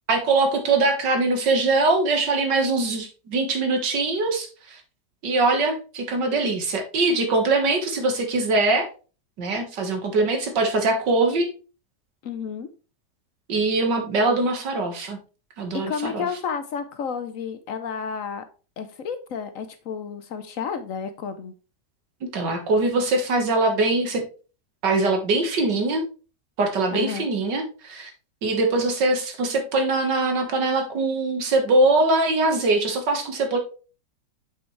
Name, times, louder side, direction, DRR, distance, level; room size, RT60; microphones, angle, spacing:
voice 1, 0.1-4.8 5.2-8.9 9.4-11.5 13.5-15.2 15.6-16.3 22.2-24.2 24.8-26.1 26.6-28.1 28.4-33.6, right 2 dB, 90° right, 4 dB, 2.2 m, -22 dB
voice 2, 12.2-12.7 15.7-18.4 18.8-21.5 26.9-27.3, left 6 dB, 60° left, 9 dB, 0.9 m, -31 dB
7.1 x 6.0 x 3.2 m, 0.35 s
omnidirectional pair, 1.8 m